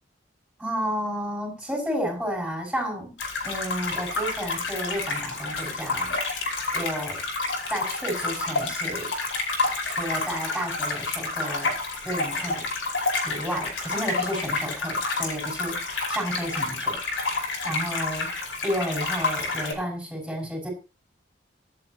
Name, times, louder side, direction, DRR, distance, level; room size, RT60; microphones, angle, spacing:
voice 1, 0.6-3.1 3.4-6.1 6.7-7.2 7.7-9.1 9.9-11.7 12.0-12.7 13.2-18.3 18.6-20.7, equal, ahead, -1 dB, 5.9 m, -31 dB
sound 1, 3.2-19.7, left 3 dB, 75° left, 5.0 m, -29 dB
24.5 x 8.2 x 3.0 m, 0.31 s
head